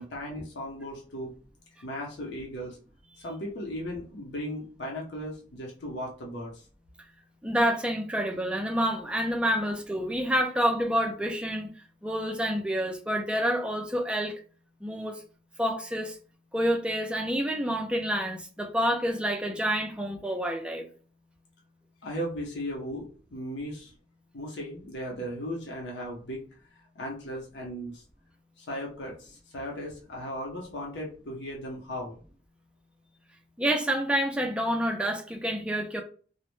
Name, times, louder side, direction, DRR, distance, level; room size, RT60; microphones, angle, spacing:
voice 1, 0.0-1.3 1.8-2.8 3.2-6.6 22.0-23.9 24.3-26.4 26.9-28.0 28.6-32.2, equal, 85° left, 0.7 m, -36 dB
voice 2, 7.4-11.7 12.0-14.4 14.8-15.2 15.6-16.2 16.5-20.9 33.6-36.0, equal, 5° right, 0.3 m, -28 dB
2.1 x 2.0 x 3.0 m
head